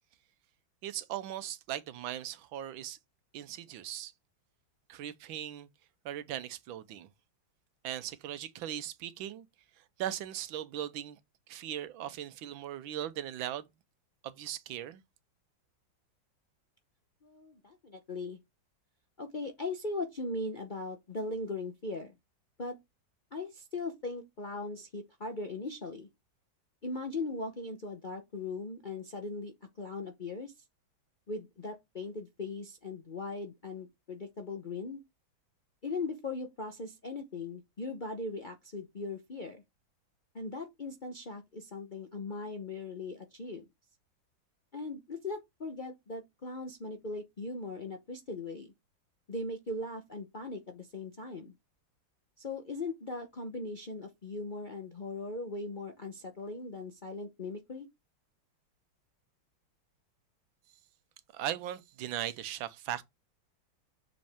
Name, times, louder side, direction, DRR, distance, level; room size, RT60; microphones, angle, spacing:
voice 1, 0.8-3.0 3.3-4.1 4.9-5.7 6.0-7.1 7.8-9.5 9.8-11.2 11.5-13.7 14.2-15.0 61.3-63.0, right 11 dB, 85° right, 1.5 m, -38 dB
voice 2, 17.2-18.4 19.2-22.1 22.6-22.8 23.3-26.1 26.8-30.5 31.3-35.0 35.8-39.6 40.3-43.6 44.7-48.7 49.3-51.5 52.4-57.9, left 3 dB, 50° left, 0.6 m, -39 dB
6.8 x 5.1 x 3.5 m
omnidirectional pair, 2.1 m